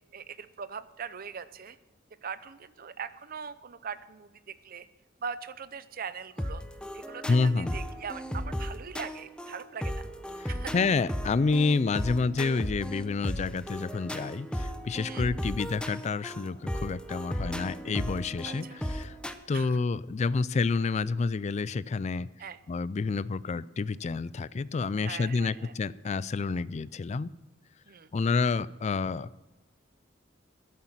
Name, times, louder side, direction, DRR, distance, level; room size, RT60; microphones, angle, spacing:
voice 1, 0.1-1.8 2.2-4.9 5.2-6.6 6.9-10.1 10.5-10.7 15.1-15.3 18.4-18.8 19.5-19.8 22.4-22.6 25.0-25.7 27.9-28.1, right 6 dB, 50° right, 14 dB, 0.6 m, -41 dB
sound 1, 6.4-19.3, equal, 5° left, 0.7 m, -36 dB
voice 2, 7.3-7.8 10.4-19.1 19.5-22.3 22.7-27.3 28.1-29.3, left 4 dB, 35° left, 19 dB, 0.4 m, -29 dB
12.0 x 8.6 x 7.4 m, 1.1 s
head